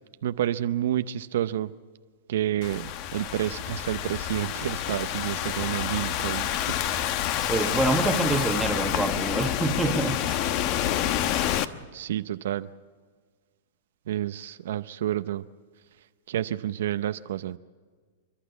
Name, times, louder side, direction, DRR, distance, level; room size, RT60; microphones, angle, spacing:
voice 1, 0.2-1.7 2.3-2.9 3.1-6.5 11.9-12.7 14.1-15.4 16.3-17.6, right 12 dB, 75° right, 0.7 m, -29 dB
Thunderstorm / Rain, 2.6-11.6, left 11 dB, 45° left, 1.0 m, -28 dB
voice 2, 7.5-10.4, right 2 dB, 5° right, 1.5 m, -26 dB
29.5 x 12.0 x 8.3 m
hypercardioid pair, 135°, 0 cm